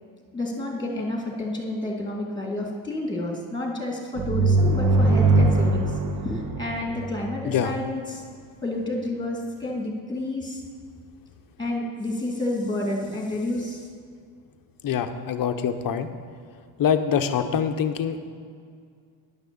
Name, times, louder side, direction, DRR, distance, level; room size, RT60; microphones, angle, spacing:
voice 1, 0.3-8.2 8.6-10.6 11.6-13.9, left 1 dB, 10° left, -1 dB, 2.4 m, -30 dB
sound 1, 4.2-7.7, right 2 dB, 40° right, 1.0 m, -21 dB
voice 2, 14.8-16.1 16.8-18.3, left 8 dB, 45° left, 8 dB, 0.9 m, -24 dB
11.0 x 6.1 x 7.0 m, 2.2 s
cardioid pair, 105°, 49 cm